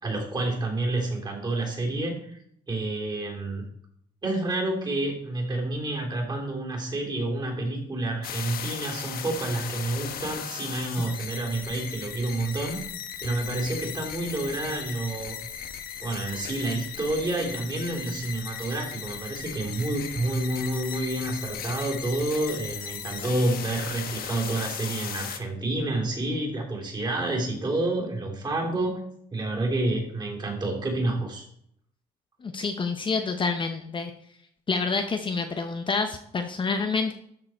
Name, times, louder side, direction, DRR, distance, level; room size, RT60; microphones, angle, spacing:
voice 1, 0.0-2.4 2.7-3.7 4.2-12.8 13.2-15.4 16.0-29.0 29.3-31.4, right 2 dB, 25° right, -1 dB, 3.3 m, -29 dB
sound 1, 8.2-25.4, left 8 dB, 60° left, 1.1 m, -37 dB
voice 2, 32.4-34.1 34.7-37.1, left 4 dB, 30° left, 6 dB, 0.8 m, -28 dB
13.0 x 4.9 x 4.4 m, 0.69 s
cardioid pair, 110°, 17 cm